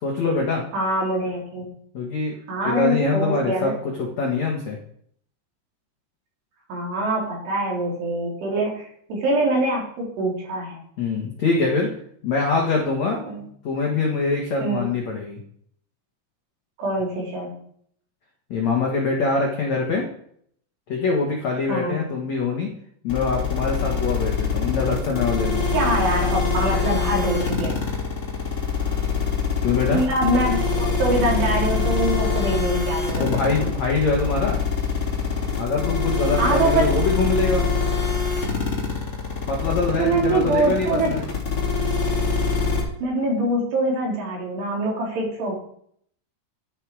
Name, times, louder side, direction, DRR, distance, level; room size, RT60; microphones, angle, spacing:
voice 1, 0.0-0.6 1.9-2.3 2.6-4.8 11.0-11.9 12.2-13.2 13.6-15.4 18.5-20.1 20.9-22.7 23.0-25.7 29.6-30.0 33.2-34.6 35.6-37.7 39.5-41.2, left 3 dB, 65° left, -1 dB, 1.8 m, -24 dB
voice 2, 0.7-1.7 2.5-3.7 6.7-10.8 13.3-13.4 14.6-14.9 16.8-17.5 21.7-22.0 25.7-27.8 29.9-33.4 36.4-36.9 40.0-41.2 43.0-45.5, right 1 dB, 60° right, -3 dB, 5.8 m, -24 dB
sound 1, 23.1-42.8, left 5 dB, 30° left, 3.5 m, -24 dB
12.0 x 9.8 x 4.9 m, 0.65 s
omnidirectional pair, 5.7 m